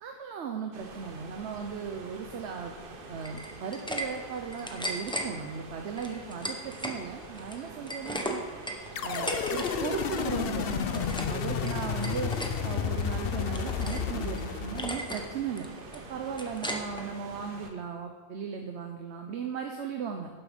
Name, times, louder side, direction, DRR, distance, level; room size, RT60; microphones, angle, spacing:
voice 1, 0.0-2.8 3.1-8.4 9.0-20.3, right 6 dB, 85° right, 4 dB, 1.1 m, -37 dB
sound 1, 0.7-17.7, right 3 dB, 55° right, 1.2 m, -46 dB
sound 2, 3.2-4.1 4.4-5.3 6.0-7.0 7.3-9.7 10.0-10.3 10.7-11.4 11.7-12.5 13.0-14.1 14.4-14.5 14.8-15.3 15.6-17.1, equal, 5° left, 0.9 m, -36 dB
sound 3, 9.0-15.4, left 7 dB, 65° left, 0.8 m, -32 dB
11.5 x 7.4 x 5.1 m, 1.4 s
omnidirectional pair, 1.1 m